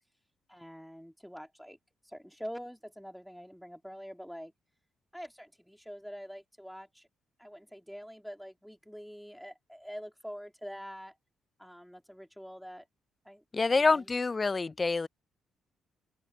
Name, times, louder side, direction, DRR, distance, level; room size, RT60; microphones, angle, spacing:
voice 1, 0.5-1.8 2.0-4.5 5.1-7.1 7.4-11.1 11.6-12.9 13.2-14.1, equal, ahead, 3.2 m, -45 dB
voice 2, 13.5-15.1, left 3 dB, 25° left, 0.3 m, -26 dB
open air
cardioid pair, 90°, 0 cm